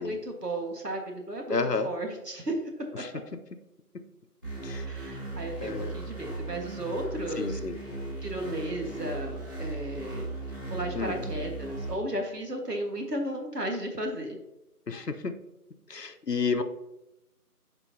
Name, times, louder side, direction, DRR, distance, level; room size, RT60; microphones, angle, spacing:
voice 1, 0.0-1.6 1.8-2.6 4.8-7.9 8.2-10.3 10.7-14.4, right 1 dB, 80° right, 2 dB, 1.6 m, -34 dB
voice 2, 1.5-1.9 4.6-4.8 5.6-5.9 7.4-7.7 10.9-11.2 14.9-15.3 15.9-16.6, left 4 dB, 90° left, 8 dB, 0.9 m, -30 dB
sound 1, 4.4-11.9, right 2 dB, 15° right, 1.9 m, -37 dB
9.8 x 4.5 x 2.7 m, 0.90 s
figure-of-eight pair, 170°, 47 cm